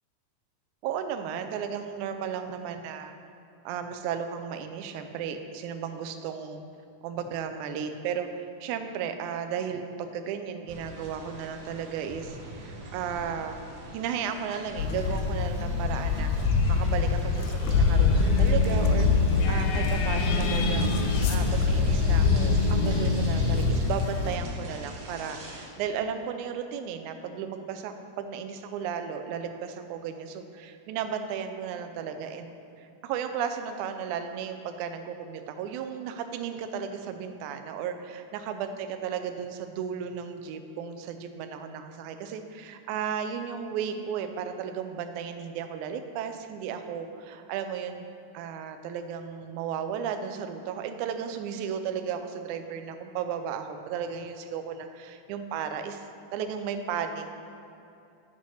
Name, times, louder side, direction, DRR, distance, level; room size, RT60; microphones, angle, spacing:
voice 1, 0.8-3.1 3.7-6.6 7.0-13.6 13.9-18.1 18.4-19.1 19.5-20.9 21.3-32.5 32.8-48.1 48.3-56.0 56.3-57.3, right 7 dB, 80° right, 7 dB, 1.9 m, -34 dB
sound 1, 10.7-25.7, right 1 dB, 60° right, 2.0 m, -42 dB
sound 2, 14.8-24.4, left 5 dB, 90° left, 2.3 m, -26 dB
sound 3, 17.6-23.6, left 2 dB, 60° left, 3.3 m, -27 dB
9.6 x 4.1 x 6.2 m, 2.7 s
omnidirectional pair, 3.8 m